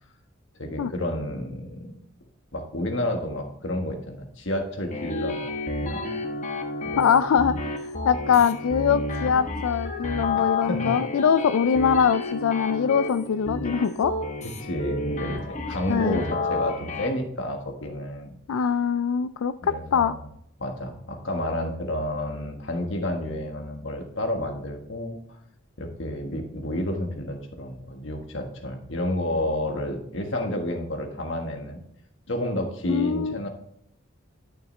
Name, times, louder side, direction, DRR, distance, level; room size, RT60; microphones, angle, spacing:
voice 1, 0.6-1.9 2.5-5.5 5.8-6.1 6.8-7.2 10.4-10.9 14.6-18.4 19.6-20.2 20.6-25.2 25.8-31.8 32.3-33.5, left 1 dB, 65° left, 4 dB, 1.5 m, -30 dB
sound 1, 4.9-17.1, left 2 dB, 35° left, 1.0 m, -31 dB
voice 2, 7.0-7.8 8.0-14.1 15.9-16.2 18.5-20.1 32.9-33.4, left 7 dB, 85° left, 12 dB, 0.4 m, -23 dB
11.5 x 6.6 x 3.2 m, 0.75 s
head